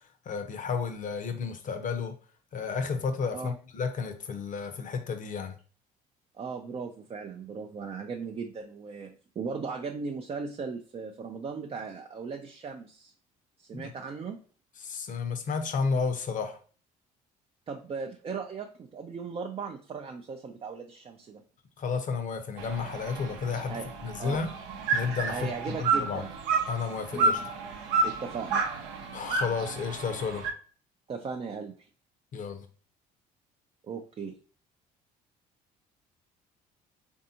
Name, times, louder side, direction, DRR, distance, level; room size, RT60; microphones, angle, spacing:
voice 1, 0.3-2.1 2.5-5.5 13.7-13.9 14.8-16.6 21.8-24.5 24.9-26.2 26.7-27.4 29.1-30.4 32.3-32.6, left 5 dB, 45° left, 7 dB, 0.7 m, -32 dB
voice 2, 6.3-13.1 13.6-14.4 17.7-21.4 23.7-23.9 24.2-24.4 25.3-26.3 27.1-27.5 28.0-28.6 31.1-31.9 33.8-34.4, right 5 dB, 30° right, 3 dB, 0.4 m, -37 dB
sound 1, 22.6-30.5, right 4 dB, 80° right, 0.6 m, -31 dB
3.3 x 2.7 x 2.7 m, 0.40 s
supercardioid pair, 70°, 18 cm